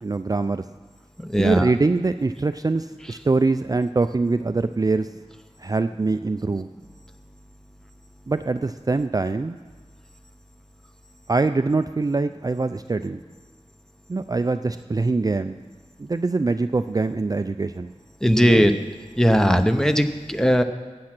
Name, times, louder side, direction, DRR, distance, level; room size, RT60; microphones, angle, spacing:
voice 1, 0.0-0.6 1.4-5.1 5.6-6.7 8.3-9.6 11.3-13.2 14.1-15.6 16.0-17.9 18.4-18.6, right 3 dB, 30° right, 9 dB, 0.4 m, -23 dB
voice 2, 1.3-1.7 18.2-18.7 19.2-20.6, equal, 5° left, 7 dB, 0.8 m, -18 dB
15.0 x 8.6 x 6.0 m, 1.3 s
wide cardioid pair, 70°, 12 cm